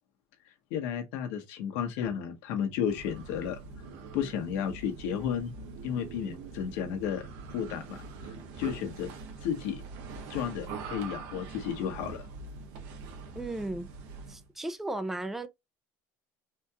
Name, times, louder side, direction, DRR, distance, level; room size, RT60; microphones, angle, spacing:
voice 1, 0.7-3.6 4.1-5.5 5.8-7.2 7.5-8.0 8.6-9.1 9.4-9.8 10.3-12.2, left 8 dB, 85° left, 1.2 m, -32 dB
sound 1, 2.7-14.5, right 4 dB, 65° right, 1.1 m, -43 dB
voice 2, 13.3-13.9 14.3-15.5, right 2 dB, 5° right, 0.4 m, -35 dB
4.3 x 2.4 x 2.8 m
cardioid pair, 170°, 8 cm